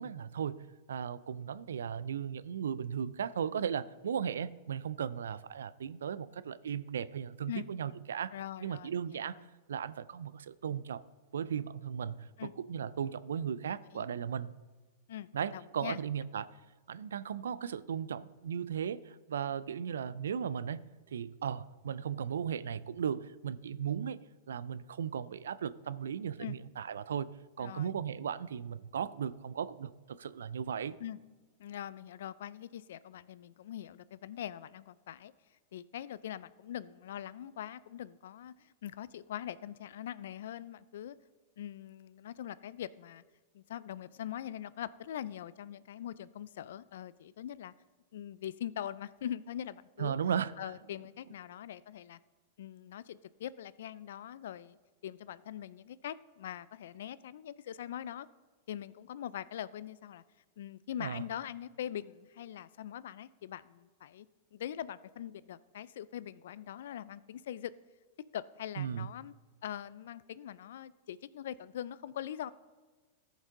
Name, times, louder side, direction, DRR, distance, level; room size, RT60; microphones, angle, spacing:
voice 1, 0.0-8.3 8.6-9.4 9.7-11.0 11.3-14.5 15.3-16.5 16.9-20.8 21.1-24.2 24.5-31.0 50.0-50.7 61.0-61.2 68.8-69.1, right 8 dB, 85° right, 17 dB, 0.3 m, -36 dB
voice 2, 8.3-9.2 12.4-12.5 13.9-14.1 15.1-16.0 26.4-26.6 27.6-27.9 31.0-31.2 31.6-35.3 35.7-41.2 41.6-43.2 43.5-47.7 48.1-50.2 50.6-52.2 52.6-54.8 55.0-58.3 58.7-60.2 60.6-64.3 64.5-67.7 68.3-69.3 69.6-72.5, left 11 dB, 75° left, 18 dB, 0.3 m, -42 dB
14.0 x 5.4 x 3.8 m, 1.3 s
hypercardioid pair, 115°, 0 cm